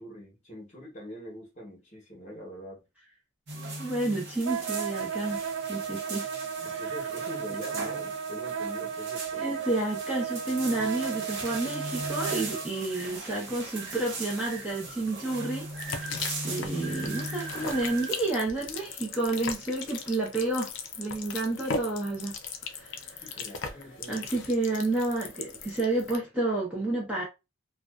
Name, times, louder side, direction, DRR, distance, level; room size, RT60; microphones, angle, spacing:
voice 1, 0.0-2.8 6.6-9.5 23.2-24.3, equal, 35° left, 1.0 m, -43 dB
sound 1, 3.5-18.3, right 2 dB, 55° right, 0.7 m, -39 dB
voice 2, 3.8-6.3 6.6-6.8 9.4-20.7 21.0-22.3 22.7-23.2 24.1-27.2, right 2 dB, 5° right, 0.7 m, -30 dB
Wind instrument woodwind instrument, 4.5-12.7, right 7 dB, 75° right, 0.3 m, -34 dB
sound 2, 15.7-26.2, left 5 dB, 60° left, 0.4 m, -38 dB
2.5 x 2.2 x 2.3 m
head